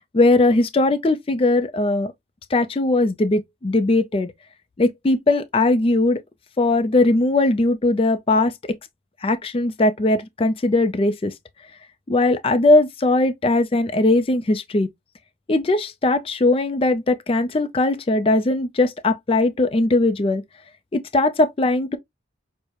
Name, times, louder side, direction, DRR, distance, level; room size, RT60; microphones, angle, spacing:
voice 1, 0.1-2.1 2.5-4.3 4.8-6.2 6.6-8.7 9.2-11.3 12.1-14.9 15.5-20.4 20.9-22.0, left 2 dB, 30° left, 0.4 m, -19 dB
6.3 x 2.1 x 2.9 m
head